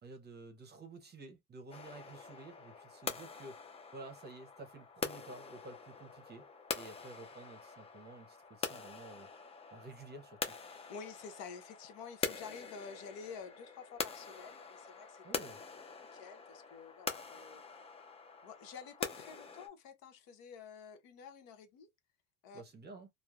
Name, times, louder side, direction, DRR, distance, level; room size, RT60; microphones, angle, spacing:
voice 1, 0.0-6.5 6.7-9.3 9.7-10.5 15.2-15.6 22.5-23.1, right 2 dB, 25° right, 0.7 m, -52 dB
sound 1, 1.7-19.7, left 4 dB, 15° left, 0.4 m, -44 dB
voice 2, 10.9-15.2 16.1-17.6 18.4-21.9 22.4-22.6, left 6 dB, 65° left, 0.9 m, -50 dB
3.0 x 2.0 x 2.4 m
supercardioid pair, 95°, 40 cm